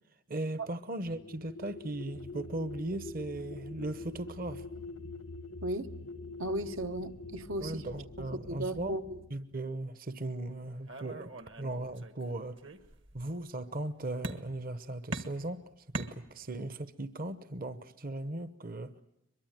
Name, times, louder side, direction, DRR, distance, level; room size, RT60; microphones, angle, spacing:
voice 1, 0.3-4.7 7.6-9.0 9.3-12.6 13.1-15.6 15.9-19.0, right 2 dB, 45° right, 0.9 m, -38 dB
sound 1, 1.0-9.3, left 3 dB, 90° left, 1.3 m, -45 dB
voice 2, 5.6-5.9 6.4-7.8 8.5-9.0, right 1 dB, 80° right, 1.2 m, -35 dB
sound 2, 10.9-12.2 12.6-13.3 14.2-14.8 15.1-16.7, right 2 dB, 60° right, 1.5 m, -42 dB
23.0 x 22.5 x 9.1 m
head